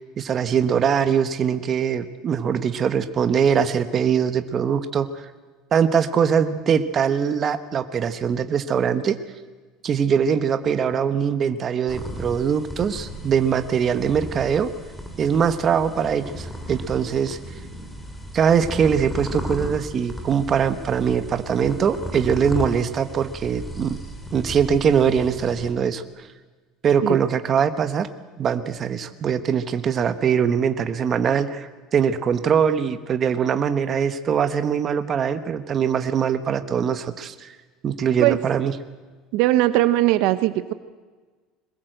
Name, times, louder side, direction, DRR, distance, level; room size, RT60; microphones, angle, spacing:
voice 1, 0.0-5.3 5.7-9.2 9.8-14.7 15.2-17.4 18.3-24.0 24.3-26.3 26.8-28.1 28.4-37.5 37.8-38.7, right 7 dB, 30° right, 10 dB, 1.1 m, -22 dB
sound 1, 11.9-25.7, equal, 5° left, 2.6 m, -35 dB
voice 2, 39.3-40.7, right 16 dB, 60° right, 13 dB, 0.9 m, -19 dB
22.0 x 20.0 x 7.9 m, 1.4 s
cardioid pair, 160°, 0 cm